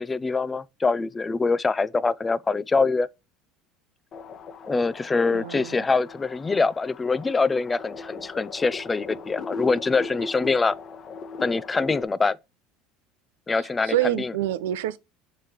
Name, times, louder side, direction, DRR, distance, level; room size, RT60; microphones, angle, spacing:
voice 1, 0.0-3.1 4.7-10.8 11.4-12.4 13.5-14.3, left 4 dB, 20° left, 0.5 m, -24 dB
sound 1, 4.1-12.0, left 4 dB, 40° left, 1.1 m, -39 dB
voice 2, 5.3-5.9 13.6-15.0, right 13 dB, 85° right, 0.7 m, -27 dB
7.1 x 4.9 x 4.5 m
supercardioid pair, 100°, 0 cm